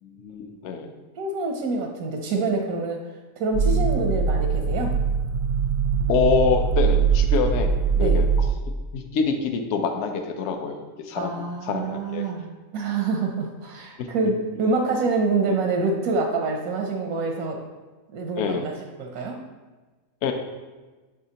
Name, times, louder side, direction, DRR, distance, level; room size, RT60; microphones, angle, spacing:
voice 1, 0.0-0.9 6.1-7.7 8.0-8.3 8.9-12.2 14.0-14.1 15.5-15.6 18.4-18.7 20.2-20.3, left 5 dB, 60° left, 5 dB, 0.8 m, -26 dB
voice 2, 1.2-3.1 3.4-4.9 8.0-8.2 11.2-17.6 18.1-18.7 19.0-19.4, right 3 dB, 90° right, 2 dB, 1.2 m, -26 dB
sound 1, 3.5-8.5, right 6 dB, 65° right, 0.7 m, -22 dB
9.0 x 3.6 x 2.8 m, 1.3 s
omnidirectional pair, 1.5 m